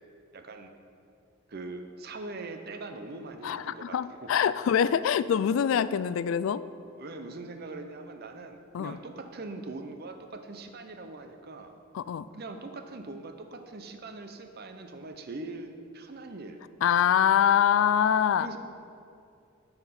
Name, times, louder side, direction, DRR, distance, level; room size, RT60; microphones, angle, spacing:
voice 1, 0.3-0.7 1.5-4.3 6.8-11.7 12.3-16.6 18.4-18.6, right 2 dB, 50° right, 6 dB, 0.7 m, -42 dB
voice 2, 3.4-6.6 8.7-9.0 11.9-12.3 16.8-18.5, left 8 dB, 85° left, 16 dB, 0.3 m, -24 dB
10.5 x 4.4 x 5.8 m, 2.5 s
head